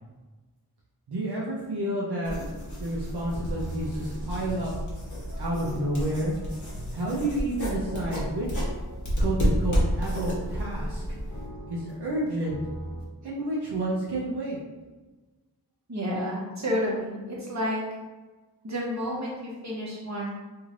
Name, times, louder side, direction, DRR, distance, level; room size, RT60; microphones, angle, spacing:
voice 1, 1.1-2.4 2.8-4.7 5.4-6.3 6.9-8.7 9.2-11.2 11.7-12.6 13.2-14.6, right 1 dB, 70° right, -6 dB, 0.7 m, -30 dB
sound 1, 2.2-11.5, equal, 45° left, 1.1 m, -31 dB
sound 2, 3.0-13.0, equal, 85° left, 0.9 m, -42 dB
voice 2, 15.9-17.8 18.6-20.3, equal, 45° right, -4 dB, 1.0 m, -30 dB
3.1 x 2.7 x 2.5 m, 1.2 s
wide cardioid pair, 55°, 40 cm